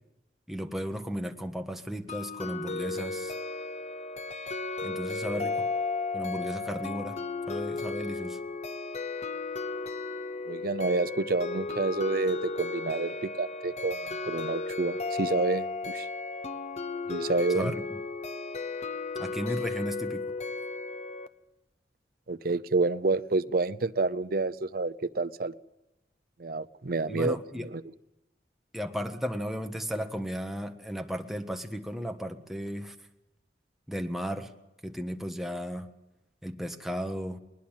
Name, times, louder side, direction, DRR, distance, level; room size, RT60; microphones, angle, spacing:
voice 1, 0.5-3.3 4.8-5.5 6.1-7.2 7.5-8.4 17.5-18.0 19.2-20.2 27.1-27.7 28.7-32.9 33.9-34.5 34.8-35.9 36.4-37.4, equal, ahead, 5 dB, 1.3 m, -35 dB
sound 1, 2.1-21.3, left 3 dB, 40° left, 0.9 m, -34 dB
voice 2, 10.5-16.1 17.1-17.7 22.3-25.5 26.4-27.8, right 3 dB, 55° right, 13 dB, 0.7 m, -29 dB
20.5 x 20.0 x 7.5 m, 0.96 s
head